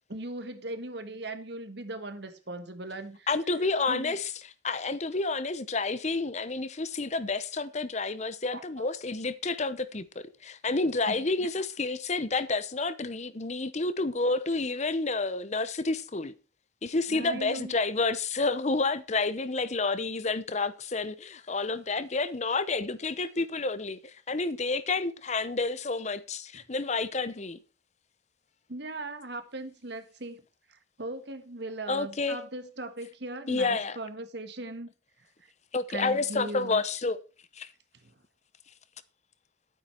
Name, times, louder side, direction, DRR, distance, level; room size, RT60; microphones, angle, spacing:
voice 1, 0.1-3.3 3.9-4.2 8.5-8.6 11.1-11.5 17.1-17.7 28.7-30.4 30.7-34.9 35.4-35.5 35.9-36.8 38.0-38.1, right 2 dB, 60° right, 1.7 m, -39 dB
voice 2, 3.3-4.3 4.6-16.3 16.8-27.6 31.9-32.4 33.5-34.0 35.7-37.2 37.5-37.7, left 3 dB, 35° left, 0.8 m, -29 dB
12.0 x 9.3 x 4.5 m
head